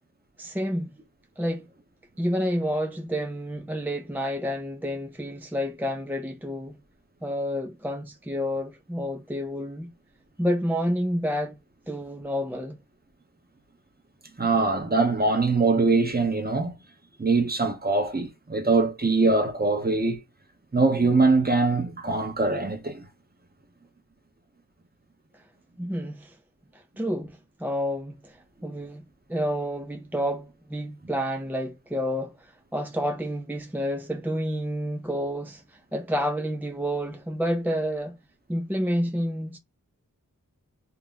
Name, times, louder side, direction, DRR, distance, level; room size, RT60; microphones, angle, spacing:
voice 1, 0.4-0.9 1.4-1.7 2.2-6.8 7.2-9.9 10.4-11.6 11.9-12.8 25.8-26.4 26.7-29.0 29.3-38.2 38.5-39.6, equal, 5° right, 0.4 m, -29 dB
voice 2, 14.4-16.7 17.2-20.2 20.7-23.1, right 3 dB, 25° right, 1.1 m, -22 dB
2.9 x 2.3 x 3.8 m
wide cardioid pair, 50°, 34 cm